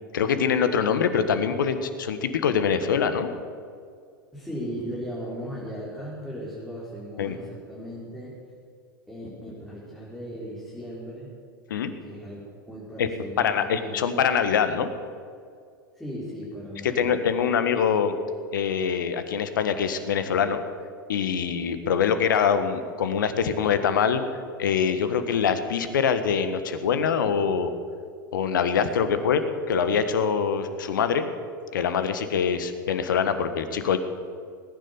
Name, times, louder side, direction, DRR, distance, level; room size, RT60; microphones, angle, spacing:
voice 1, 0.1-3.3 7.2-7.4 11.7-11.9 13.0-13.1 13.4-14.9 16.8-18.1 18.5-20.6 21.1-24.2 24.6-27.7 28.3-31.3 31.7-34.0, left 7 dB, 70° left, 10 dB, 1.5 m, -24 dB
voice 2, 4.3-8.4 9.1-11.3 12.0-14.1 15.9-17.5 29.0-29.5, equal, 5° left, -8 dB, 5.0 m, -37 dB
19.5 x 10.0 x 7.1 m, 2.2 s
figure-of-eight pair, 90°, 11 cm